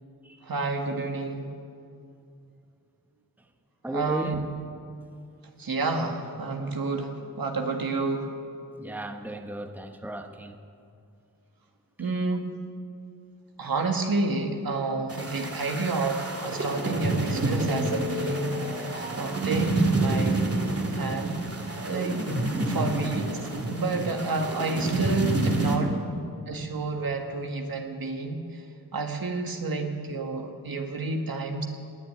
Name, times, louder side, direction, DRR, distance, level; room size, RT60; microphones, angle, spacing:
voice 1, 0.4-1.5 3.9-4.4 5.6-7.1 7.4-8.3 12.0-12.5 13.6-18.5 18.8-20.4 20.9-21.4 21.9-22.2 22.6-23.2 23.7-26.0 26.5-28.4 28.9-31.6, right 3 dB, 70° right, 1.9 m, -29 dB
voice 2, 3.8-4.4 8.8-10.6 22.5-23.0 25.8-26.1, right 1 dB, 5° right, 1.1 m, -35 dB
sound 1, 15.1-25.8, right 2 dB, 40° right, 2.4 m, -28 dB
19.5 x 7.6 x 9.6 m
cardioid pair, 65°, 36 cm